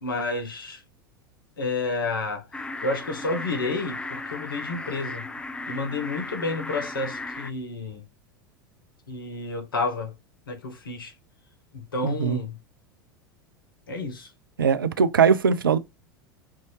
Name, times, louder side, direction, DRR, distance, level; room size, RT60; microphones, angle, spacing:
voice 1, 0.0-0.8 1.6-2.4 2.8-5.3 5.7-8.0 9.1-10.1 10.5-11.1 11.7-12.6 13.9-14.3, left 3 dB, 70° left, 1.1 m, -30 dB
sound 1, 2.5-7.5, left 2 dB, 10° left, 0.4 m, -36 dB
voice 2, 12.0-12.4 14.6-15.8, right 6 dB, 75° right, 0.5 m, -20 dB
5.8 x 2.7 x 3.1 m
figure-of-eight pair, 85°, 12 cm